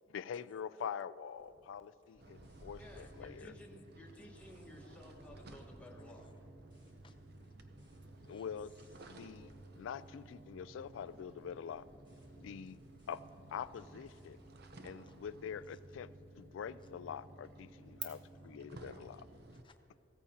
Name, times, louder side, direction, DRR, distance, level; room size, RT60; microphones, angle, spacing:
voice 1, 0.1-3.5 8.3-8.7 9.0-11.8 12.4-12.8 13.1-13.2 13.5-14.4 14.8-16.1 16.4-19.3, left 7 dB, 80° left, 17 dB, 0.3 m, -45 dB
sound 1, 1.3-10.4 10.7-14.9, equal, 25° right, 2.2 m, -68 dB
voice 2, 2.0-2.6 3.0-3.1 3.4-3.5 6.1-6.3 7.0-7.2 7.6-8.6 9.0-9.6 12.4-12.6 15.0-15.2 15.7-15.8 18.4-18.5 19.5-20.0, left 3 dB, 25° left, 7 dB, 0.6 m, -68 dB
sound 2, 2.2-19.6, right 2 dB, 55° right, 0.7 m, -55 dB
voice 3, 2.8-6.3, left 1 dB, 5° left, -2 dB, 1.4 m, -55 dB
sound 3, 8.0-18.0, right 10 dB, 75° right, 1.2 m, -58 dB
16.0 x 14.0 x 2.8 m, 2.9 s
head